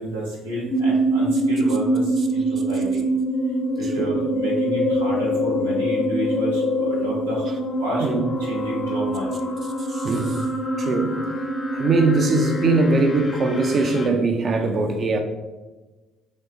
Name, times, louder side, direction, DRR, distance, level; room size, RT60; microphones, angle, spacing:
voice 1, 0.0-3.0 3.8-7.5 7.8-8.1 8.4-9.3, equal, 80° right, 1.1 m, -30 dB
sound 1, 0.7-14.1, right 1 dB, 30° left, 0.6 m, -24 dB
voice 2, 9.9-10.4 10.8-11.2 11.7-15.2, right 3 dB, 40° right, 0.5 m, -21 dB
5.1 x 3.1 x 2.7 m
figure-of-eight pair, 55°, 0 cm